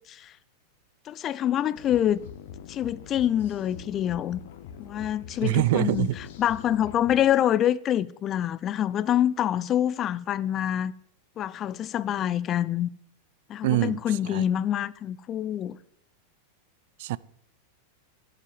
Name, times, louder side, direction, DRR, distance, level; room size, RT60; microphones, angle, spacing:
voice 1, 1.1-2.2 2.7-4.4 4.8-6.1 6.4-10.9 11.4-12.9 13.5-15.8, left 11 dB, 30° left, 0.5 m, -26 dB
sound 1, 1.8-7.3, left 8 dB, 55° left, 1.3 m, -44 dB
voice 2, 5.4-6.1 13.6-14.0 14.3-14.4 17.0-17.2, right 16 dB, 50° right, 0.4 m, -24 dB
11.0 x 7.9 x 9.4 m
figure-of-eight pair, 90°, 0 cm